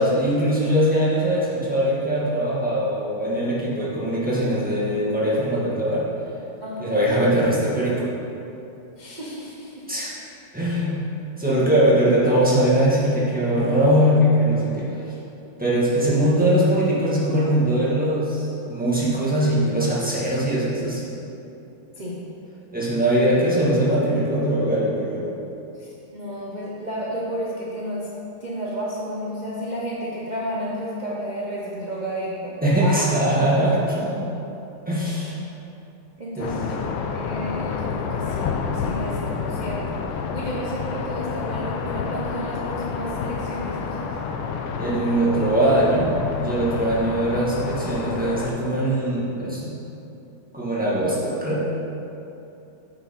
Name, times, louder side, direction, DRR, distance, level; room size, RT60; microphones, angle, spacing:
voice 1, 0.0-6.1 6.8-8.0 9.9-10.1 10.5-11.0 11.4-15.1 15.6-21.2 22.7-25.3 32.6-34.3 34.9-35.4 36.4-36.5 44.8-49.7 50.5-51.7, right 1 dB, 5° right, -8 dB, 1.3 m, -21 dB
voice 2, 6.6-7.0 9.0-9.9 22.0-22.2 25.8-28.1 28.4-33.1 36.2-40.0 40.3-44.1, equal, 60° right, -6 dB, 0.4 m, -32 dB
sound 1, 36.4-48.5, left 5 dB, 85° left, 1.5 m, -29 dB
9.6 x 5.7 x 4.2 m, 2.9 s
omnidirectional pair, 2.4 m